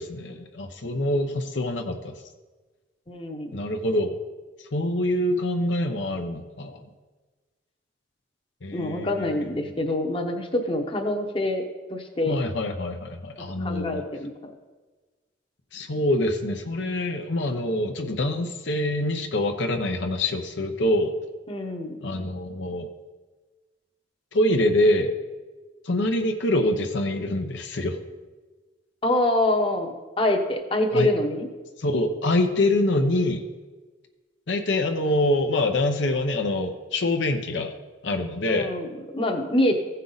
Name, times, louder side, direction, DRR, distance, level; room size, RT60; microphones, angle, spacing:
voice 1, 0.0-2.2 3.5-4.2 4.6-6.8 8.6-9.7 12.3-14.1 15.7-21.1 22.0-22.9 24.3-25.1 25.8-28.0 30.9-31.1 31.8-33.4 34.5-37.7 38.0-38.7, left 1 dB, 75° left, 5 dB, 0.8 m, -25 dB
voice 2, 3.1-3.5 8.7-11.6 11.9-12.4 13.6-14.5 21.5-22.0 29.0-31.5 38.5-39.7, left 1 dB, 30° left, 3 dB, 0.9 m, -25 dB
15.5 x 5.5 x 4.0 m, 1.3 s
head